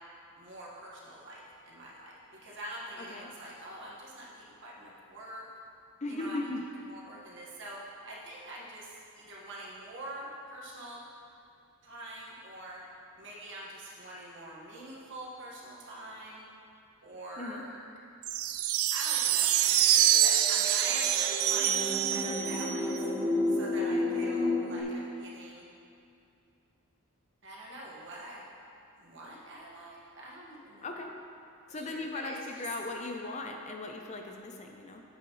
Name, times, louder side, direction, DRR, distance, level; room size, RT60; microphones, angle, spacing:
voice 1, 0.4-5.5 6.1-6.5 6.9-11.0 11.8-12.8 13.2-16.4 17.0-17.9 18.9-23.1 23.5-25.6 27.4-28.4 29.0-30.8 31.7-32.7, right 1 dB, 60° right, -5 dB, 1.6 m, -44 dB
voice 2, 6.0-6.6 17.4-17.6 24.0-24.2 30.8-31.1 31.7-35.0, left 2 dB, 30° left, 3 dB, 0.5 m, -38 dB
sound 1, 18.2-23.0, right 11 dB, 75° right, 0.4 m, -26 dB
sound 2, 20.0-24.8, left 2 dB, 10° left, 1.4 m, -32 dB
9.1 x 7.7 x 3.1 m, 2.6 s
head